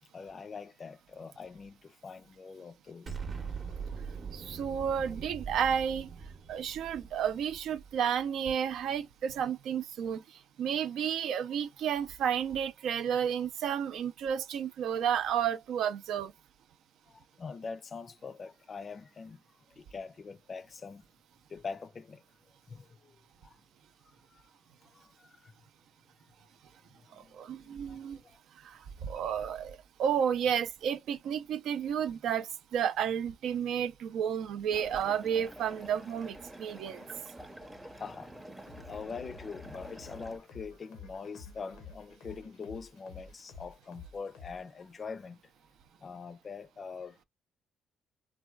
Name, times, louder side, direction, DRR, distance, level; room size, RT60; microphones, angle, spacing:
voice 1, 0.1-3.2 17.1-19.4 19.7-21.0 21.5-22.2 22.7-23.6 24.3-24.4 24.9-25.5 26.9-28.4 37.8-38.4 38.9-45.4 46.0-47.2, left 5 dB, 45° left, 0.4 m, -44 dB
Explosion, 3.1-8.2, right 5 dB, 50° right, 0.7 m, -42 dB
voice 2, 4.3-6.1 6.5-16.3 27.1-28.2 28.6-37.0, right 8 dB, 75° right, 0.4 m, -32 dB
sound 1, 34.7-40.4, right 1 dB, 10° right, 0.6 m, -49 dB
sound 2, 35.3-45.0, left 5 dB, 85° left, 0.6 m, -52 dB
3.3 x 2.2 x 2.2 m
supercardioid pair, 65°, 0 cm